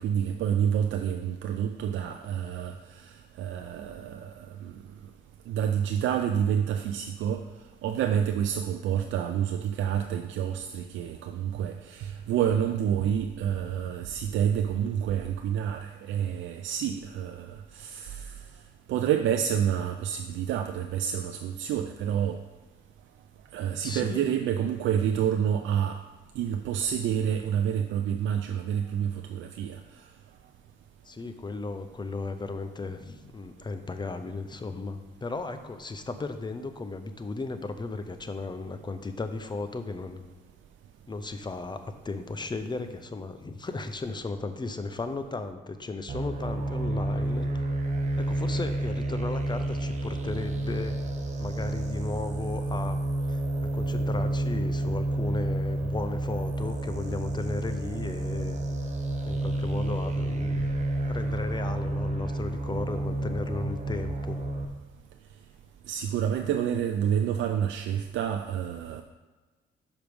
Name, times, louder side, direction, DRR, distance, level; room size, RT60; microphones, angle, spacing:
voice 1, 0.0-4.3 4.6-4.7 5.5-7.5 7.8-18.3 18.9-22.4 23.5-26.0 26.4-29.8 65.9-69.0, right 9 dB, 75° right, 6 dB, 0.4 m, -28 dB
voice 2, 23.8-24.3 31.1-40.2 41.1-47.6 48.2-51.0 51.4-53.0 53.3-58.6 59.2-60.6 61.0-64.4, left 3 dB, 20° left, 8 dB, 0.6 m, -35 dB
sound 1, 46.1-64.6, right 1 dB, 35° right, 0.9 m, -30 dB
5.9 x 5.0 x 5.2 m, 1.3 s
cardioid pair, 90°, 20 cm